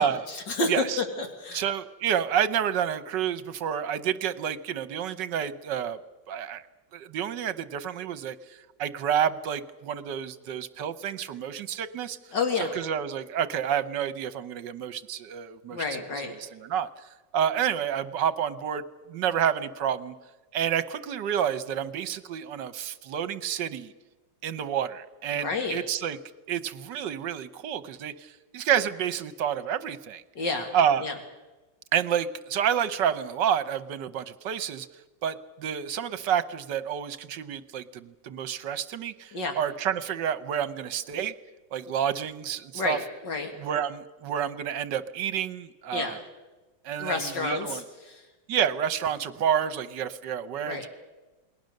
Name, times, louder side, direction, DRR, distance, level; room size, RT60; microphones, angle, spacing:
voice 1, 0.0-1.6 12.3-12.7 15.7-16.3 25.3-25.8 30.4-30.7 31.0-31.1 39.3-39.5 42.7-43.5 45.9-46.2 47.0-47.8 48.1-48.2 50.6-50.9, left 3 dB, 65° left, 4 dB, 2.8 m, -30 dB
voice 2, 0.7-1.0 1.5-6.0 6.3-6.6 6.9-12.2 12.6-16.0 16.4-16.9 17.3-18.8 19.1-20.1 20.5-23.9 24.4-26.2 26.5-30.2 30.7-31.1 31.9-34.9 35.2-41.3 41.7-43.0 43.6-46.2 46.8-47.8 48.5-50.9, right 9 dB, 70° right, 14 dB, 1.5 m, -29 dB
28.5 x 20.5 x 6.6 m, 1.2 s
omnidirectional pair, 2.1 m